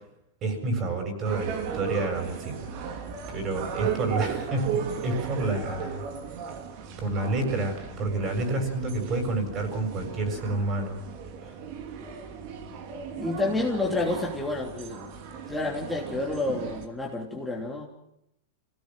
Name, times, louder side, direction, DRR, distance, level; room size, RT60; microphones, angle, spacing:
voice 1, 0.4-3.0 3.3-6.1 7.0-11.0 11.4-11.6, right 2 dB, 35° right, 5 dB, 7.4 m, -29 dB
sound 1, 1.2-16.9, right 7 dB, 50° right, 3.2 m, -36 dB
voice 2, 13.2-15.1 15.5-17.9, left 2 dB, 5° left, -2 dB, 3.1 m, -29 dB
26.0 x 17.5 x 7.6 m, 0.84 s
supercardioid pair, 135°, 0 cm